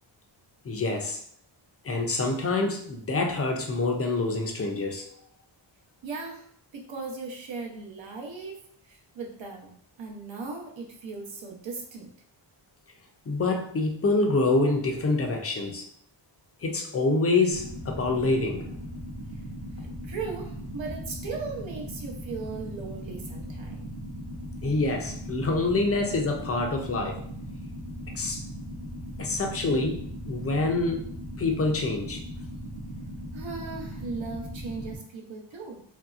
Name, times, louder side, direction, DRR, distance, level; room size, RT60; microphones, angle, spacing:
voice 1, 0.6-1.2 1.8-5.1 13.3-15.8 16.6-18.7 24.6-27.2 28.1-28.5 29.2-31.1 31.4-32.2, left 3 dB, 35° left, 2 dB, 0.4 m, -26 dB
voice 2, 6.0-6.5 6.7-12.1 19.8-23.9 33.3-35.8, right 4 dB, 70° right, 0 dB, 0.7 m, -38 dB
sound 1, 17.5-35.0, equal, 15° right, 0.7 m, -38 dB
3.0 x 2.6 x 2.4 m, 0.63 s
wide cardioid pair, 175°, 47 cm